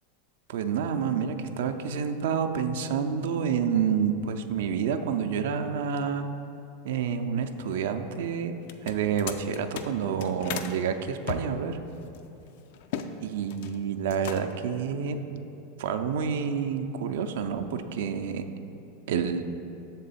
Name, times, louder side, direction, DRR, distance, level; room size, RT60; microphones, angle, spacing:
voice 1, 0.5-6.3 6.8-11.8 13.2-15.2 15.8-18.5 19.1-19.4, right 7 dB, 70° right, 8 dB, 0.3 m, -28 dB
sound 1, 8.6-10.7 11.2-13.1 13.4-13.8 14.1-14.7, left 8 dB, 65° left, 0.3 m, -37 dB
6.6 x 3.7 x 4.1 m, 2.8 s
hypercardioid pair, 95°, 0 cm